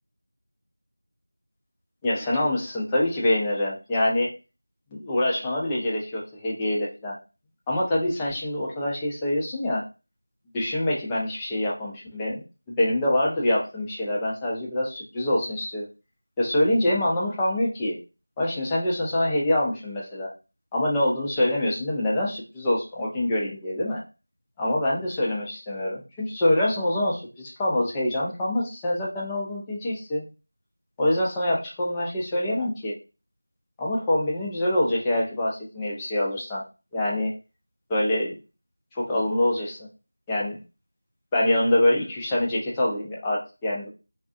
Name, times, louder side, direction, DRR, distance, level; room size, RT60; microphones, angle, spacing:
voice 1, 2.0-4.3 4.9-7.1 7.7-9.8 10.5-12.4 12.7-15.9 16.4-18.0 18.4-20.3 20.7-24.0 24.6-30.2 31.0-32.9 33.8-36.6 36.9-37.3 37.9-38.4 38.9-39.9 40.3-40.6 41.3-43.9, left 1 dB, 5° left, -6 dB, 0.4 m, -25 dB
2.3 x 2.3 x 2.5 m, 0.30 s
figure-of-eight pair, 175°, 0 cm